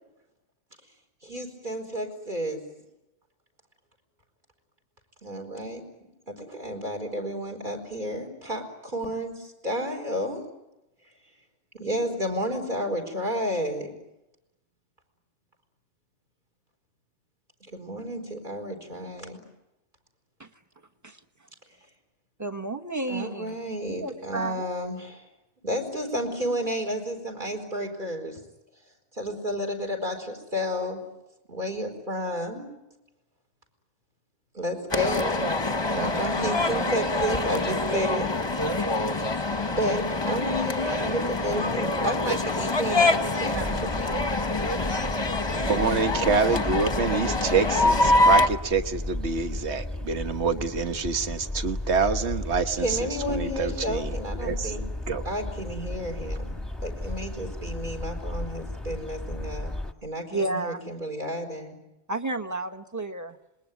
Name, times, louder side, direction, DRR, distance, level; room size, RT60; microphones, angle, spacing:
voice 1, 1.2-2.6 5.2-5.8 6.3-10.4 11.7-13.9 17.7-19.4 23.1-25.2 25.6-28.4 29.1-31.0 31.5-32.7 34.5-35.6 35.9-38.3 39.7-44.3 52.8-54.8 55.2-59.7 60.0-61.8, equal, 45° right, 2 dB, 5.0 m, -31 dB
voice 2, 22.4-23.6 23.9-24.7 57.0-57.1 60.3-60.9 62.1-63.4, right 2 dB, 15° right, 5 dB, 1.3 m, -32 dB
sound 1, 34.9-48.5, left 2 dB, 25° left, 1.1 m, -25 dB
sound 2, 43.5-59.9, left 1 dB, ahead, 1.3 m, -34 dB
voice 3, 45.6-54.7 55.1-55.2, right 5 dB, 70° right, 8 dB, 1.5 m, -27 dB
27.0 x 21.5 x 9.3 m, 0.94 s
omnidirectional pair, 1.2 m